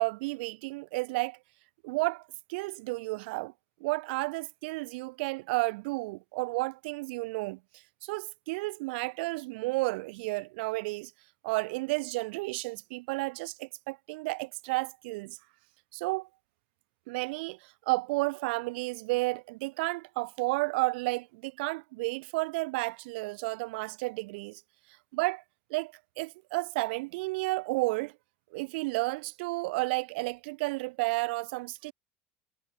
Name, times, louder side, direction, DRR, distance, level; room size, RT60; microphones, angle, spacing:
voice 1, 0.0-1.4 1.8-2.2 2.5-3.5 3.8-7.6 8.0-11.1 11.4-15.4 15.9-16.3 17.1-24.6 25.1-25.4 25.7-28.1 28.5-31.9, right 24 dB, 85° right, 5.8 m, -32 dB
cardioid pair, 140°, 6 cm